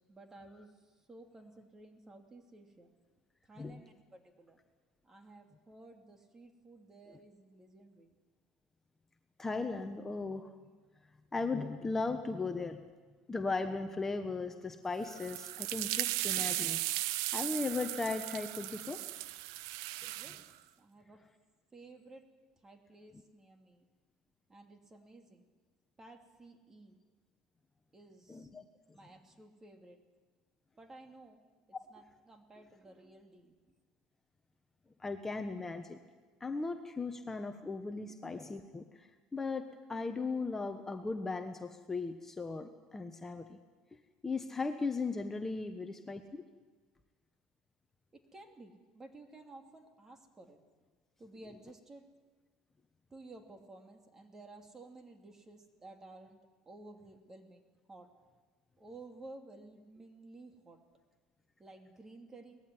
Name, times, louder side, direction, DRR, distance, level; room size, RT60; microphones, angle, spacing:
voice 1, 0.1-2.9 3.4-4.6 5.0-8.1 20.1-20.4 20.8-21.2 21.7-22.2 22.6-23.9 24.5-25.5 26.0-27.0 27.9-28.5 28.9-30.0 30.8-31.4 31.9-33.6 48.1-50.6 51.2-52.0 53.1-56.4 56.6-58.1 58.8-60.8 61.6-62.6, right 2 dB, 25° right, 4 dB, 2.9 m, -54 dB
voice 2, 9.4-10.5 11.3-12.8 13.3-19.0 20.0-20.1 28.3-28.6 35.0-36.0 36.4-43.6 44.2-46.4, left 3 dB, 15° left, 6 dB, 1.2 m, -37 dB
sound 1, 15.0-20.5, right 16 dB, 85° right, 0.6 m, -36 dB
19.5 x 15.0 x 9.6 m, 1.4 s
supercardioid pair, 100°, 2 cm